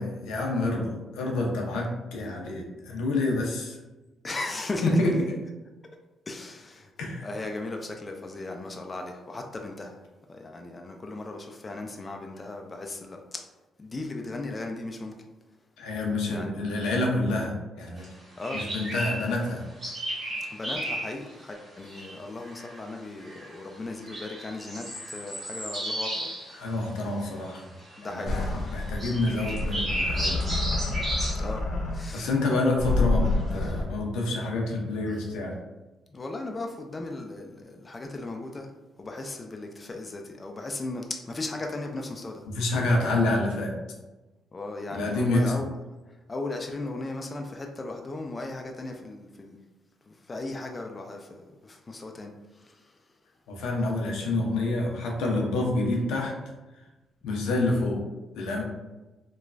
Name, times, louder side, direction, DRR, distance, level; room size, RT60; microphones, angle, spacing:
voice 1, 0.0-3.8 4.8-5.1 7.0-7.3 15.8-18.1 18.5-19.6 26.5-27.6 28.0-28.4 28.7-30.5 32.1-35.6 42.5-43.7 44.9-45.6 53.5-56.3 57.2-58.0 58.3-58.6, left 2 dB, 90° left, -1 dB, 0.5 m, -27 dB
voice 2, 4.2-5.0 6.3-6.9 7.2-10.0 10.3-13.5 13.8-15.1 16.3-16.5 18.4-18.7 20.3-26.3 28.0-28.4 31.4-31.7 31.9-32.3 35.1-35.2 36.1-38.7 39.0-42.4 44.5-45.7 46.3-49.6 50.1-52.9, left 2 dB, 25° left, 2 dB, 0.3 m, -37 dB
sound 1, 18.0-18.1 18.4-19.3 19.8-21.1 21.8-22.2 22.4-22.8 23.2-23.6 24.0-26.5 26.8-27.0 27.9-28.0 29.0-31.4, equal, 40° right, 1.5 m, -33 dB
sound 2, 28.3-32.2 32.8-33.8, left 2 dB, 50° left, 0.7 m, -28 dB
3.1 x 2.2 x 2.4 m, 1.1 s
cardioid pair, 90°, 0 cm